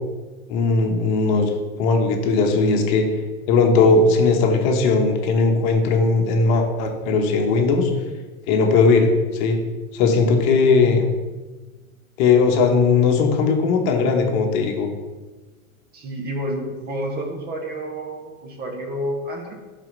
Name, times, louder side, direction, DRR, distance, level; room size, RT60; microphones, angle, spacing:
voice 1, 0.5-1.5 1.8-3.1 3.5-7.9 8.5-9.6 9.9-11.1 12.2-14.9, left 4 dB, 40° left, 3 dB, 1.2 m, -18 dB
voice 2, 15.9-19.5, equal, 20° right, 3 dB, 0.9 m, -29 dB
6.1 x 4.3 x 5.2 m, 1.3 s
hypercardioid pair, 125°, 42 cm